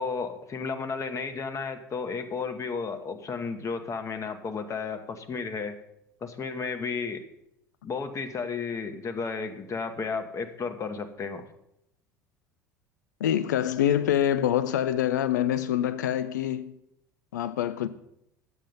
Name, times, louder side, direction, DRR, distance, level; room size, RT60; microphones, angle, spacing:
voice 1, 0.0-5.8 6.2-7.2 7.8-11.4, left 5 dB, 30° left, 1.1 m, -33 dB
voice 2, 13.2-16.7 17.3-17.9, left 10 dB, 75° left, 0.4 m, -25 dB
9.2 x 7.6 x 5.4 m
figure-of-eight pair, 65°, 10 cm